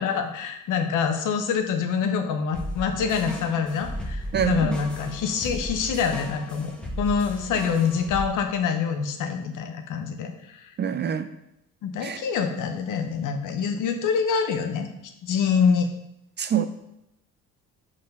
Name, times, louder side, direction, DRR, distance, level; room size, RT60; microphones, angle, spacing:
voice 1, 0.0-6.7 7.0-10.7 11.8-14.9 15.2-15.9, left 6 dB, 65° left, 6 dB, 1.0 m, -25 dB
sound 1, 2.5-8.3, equal, 5° left, 1.1 m, -35 dB
voice 2, 4.3-4.7 10.8-11.3 12.0-12.2 16.4-16.7, right 8 dB, 35° right, 10 dB, 0.4 m, -25 dB
5.1 x 4.1 x 5.4 m, 0.84 s
cardioid pair, 95°, 33 cm